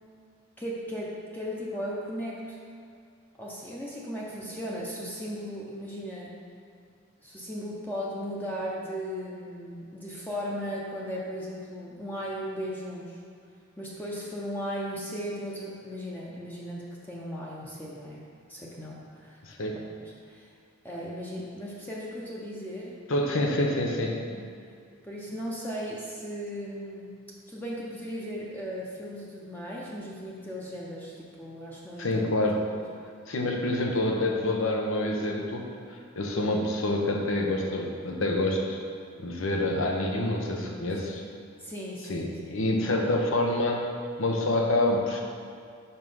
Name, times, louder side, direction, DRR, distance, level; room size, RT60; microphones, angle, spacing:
voice 1, 0.6-2.6 3.3-6.3 7.2-13.2 13.8-18.2 18.5-19.4 19.7-20.5 20.8-23.0 24.3-24.5 25.1-27.1 27.5-32.2 40.6-41.0 41.6-42.3, equal, 10° left, -5 dB, 0.7 m, -37 dB
voice 2, 19.4-19.8 23.1-24.2 32.0-32.6 33.3-35.7 36.2-38.8 39.2-41.2 42.1-43.9 44.2-45.2, left 1 dB, 75° left, 1 dB, 0.9 m, -27 dB
5.5 x 4.7 x 5.5 m, 2.2 s
head